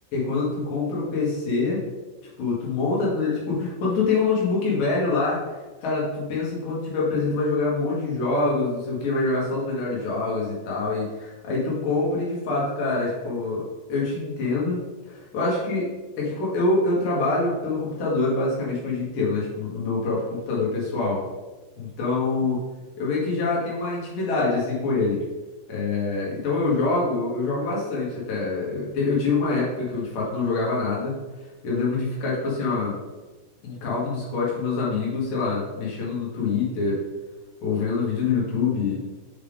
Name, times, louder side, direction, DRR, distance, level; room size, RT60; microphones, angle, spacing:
voice 1, 0.1-1.8 2.4-5.4 5.8-13.6 13.9-15.9 16.2-21.2 21.8-22.6 23.0-25.2 25.7-31.1 31.6-32.9 33.6-37.0 37.6-39.0, left 3 dB, 70° left, -5 dB, 2.0 m, -25 dB
6.5 x 5.0 x 3.5 m, 1.2 s
omnidirectional pair, 6.0 m